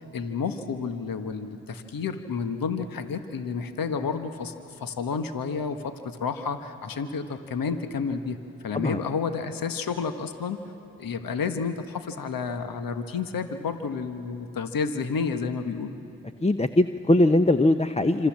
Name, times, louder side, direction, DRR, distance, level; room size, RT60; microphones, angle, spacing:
voice 1, 0.0-8.4 8.6-10.6 11.0-15.9, left 5 dB, 60° left, 8 dB, 1.4 m, -30 dB
voice 2, 16.4-18.3, left 1 dB, 15° left, 10 dB, 0.8 m, -21 dB
26.0 x 26.0 x 7.5 m, 2.9 s
hypercardioid pair, 40°, 39 cm